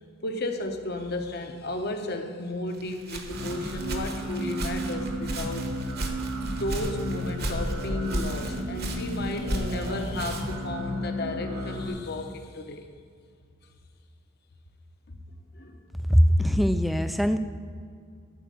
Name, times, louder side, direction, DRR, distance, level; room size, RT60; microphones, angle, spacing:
voice 1, 0.2-5.7 6.4-12.9 15.1-15.2 15.5-15.8, left 2 dB, 50° left, 5 dB, 0.9 m, -33 dB
Walk footsteps, 2.7-10.7, right 1 dB, 45° right, 1.1 m, -35 dB
sound 1, 3.3-11.9, equal, 85° right, 1.6 m, -33 dB
voice 2, 16.1-17.4, equal, ahead, 9 dB, 0.3 m, -21 dB
12.5 x 4.7 x 7.5 m, 2.2 s
head